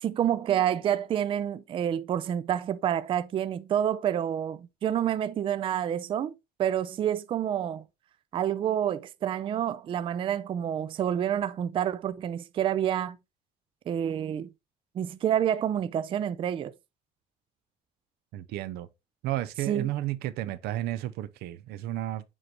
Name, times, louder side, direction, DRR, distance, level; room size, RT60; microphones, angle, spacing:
voice 1, 0.0-6.3 6.6-7.8 8.3-13.2 13.9-14.5 15.0-16.7 19.7-19.9, right 10 dB, 30° right, 0.4 m, -28 dB
voice 2, 18.3-18.9 19.2-22.2, right 14 dB, 80° right, 0.6 m, -32 dB
7.6 x 4.7 x 2.9 m
cardioid pair, 145°, 16 cm